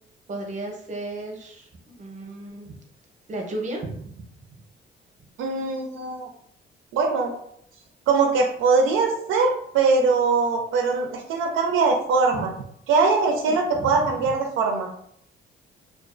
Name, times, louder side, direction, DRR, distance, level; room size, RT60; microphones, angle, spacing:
voice 1, 0.3-1.7 2.0-2.8 3.3-4.3 12.3-12.5 13.5-14.3, right 2 dB, 40° right, 1 dB, 0.7 m, -34 dB
voice 2, 5.4-6.3 6.9-7.3 8.1-12.5 12.9-14.9, right 4 dB, 85° right, 2 dB, 0.4 m, -22 dB
2.3 x 2.2 x 2.4 m, 0.70 s
cardioid pair, 90°, 20 cm